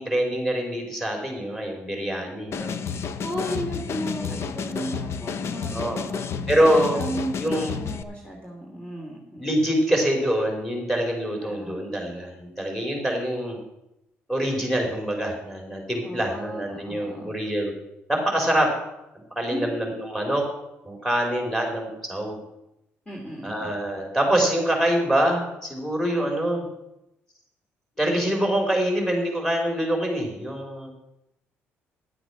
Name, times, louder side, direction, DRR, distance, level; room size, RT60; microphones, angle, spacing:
voice 1, 0.0-2.7 3.9-4.3 4.6-4.8 5.5-6.0 6.5-7.0 7.4-7.7 9.4-13.6 14.3-17.7 18.1-18.7 19.3-20.4 20.8-22.4 23.4-26.6 28.0-30.9, right 1 dB, 5° left, 1 dB, 4.6 m, -25 dB
sound 1, 2.5-8.0, left 6 dB, 60° left, 0.8 m, -31 dB
voice 2, 3.2-6.5 6.9-9.4 11.4-11.8 16.0-17.3 19.5-19.8 23.1-23.7, right 1 dB, 25° left, -2 dB, 2.9 m, -35 dB
11.0 x 7.9 x 6.2 m, 0.86 s
cardioid pair, 80°, 5 cm